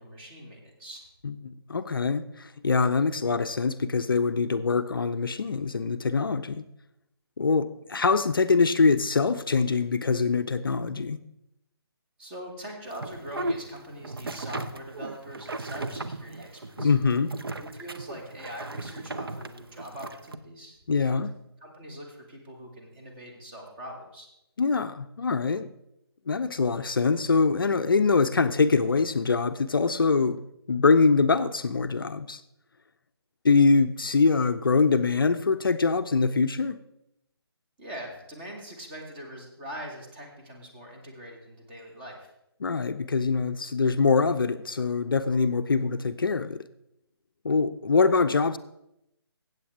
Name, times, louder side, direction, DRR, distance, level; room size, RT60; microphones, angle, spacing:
voice 1, 0.0-1.1 12.2-16.9 17.6-21.2 21.6-24.3 37.8-42.3, equal, 25° right, 2.0 m, -42 dB
voice 2, 1.2-6.6 7.4-11.2 16.8-17.3 20.9-21.3 24.6-25.7 26.3-30.4 30.7-32.4 33.4-36.8 42.6-46.6 47.4-48.6, left 4 dB, 55° left, 0.5 m, -24 dB
sound 1, 12.9-20.4, right 2 dB, 60° right, 0.7 m, -36 dB
15.0 x 8.0 x 3.5 m
figure-of-eight pair, 145°, 14 cm